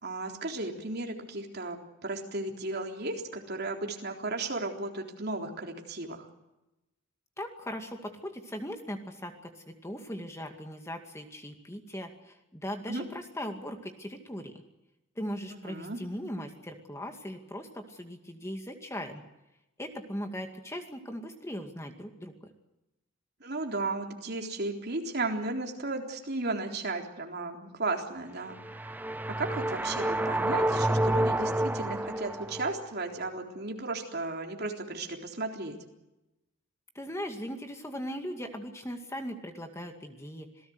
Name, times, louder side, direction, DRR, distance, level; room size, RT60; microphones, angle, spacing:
voice 1, 0.0-6.3 12.9-13.0 15.5-16.0 23.4-29.0 29.4-35.8, right 2 dB, 50° right, 2 dB, 3.8 m, -35 dB
voice 2, 7.4-14.5 15.2-19.2 19.8-22.3 36.9-40.7, equal, 15° left, 5 dB, 2.2 m, -39 dB
sound 1, 28.5-32.8, right 1 dB, 10° right, 0.7 m, -29 dB
27.0 x 18.0 x 8.0 m, 0.94 s
head